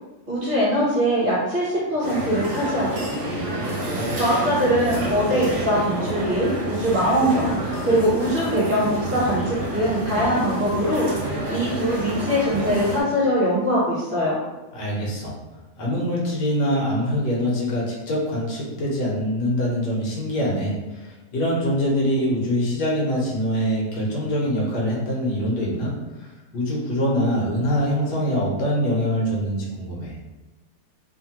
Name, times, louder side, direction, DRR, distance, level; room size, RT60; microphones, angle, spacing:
voice 1, 0.3-3.1 4.2-14.4, equal, 40° right, -8 dB, 1.0 m, -22 dB
sound 1, 2.0-13.0, right 1 dB, 55° right, 0.8 m, -28 dB
voice 2, 3.5-4.1 14.7-15.4 15.8-25.9 26.2-26.3 26.5-30.1, equal, 85° left, -3 dB, 1.4 m, -24 dB
3.2 x 2.2 x 2.9 m, 1.1 s
omnidirectional pair, 1.8 m